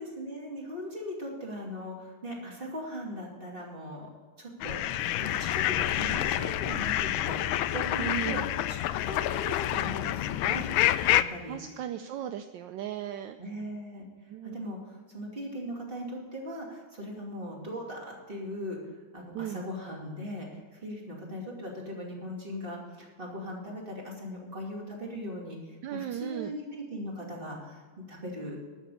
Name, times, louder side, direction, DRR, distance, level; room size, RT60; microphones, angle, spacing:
voice 1, 0.0-4.1 4.4-4.8 5.2-8.4 8.7-10.7 11.1-11.6 13.4-14.1 14.4-18.8 19.1-27.8 28.1-28.6, equal, 25° right, -2 dB, 2.7 m, -39 dB
sound 1, 4.6-11.2, left 13 dB, 75° left, 1.2 m, -28 dB
voice 2, 8.0-8.4 11.5-13.4 14.3-14.6 19.3-19.6 25.8-26.5, right 10 dB, 75° right, 9 dB, 1.1 m, -36 dB
12.0 x 7.0 x 8.2 m, 1.4 s
omnidirectional pair, 2.4 m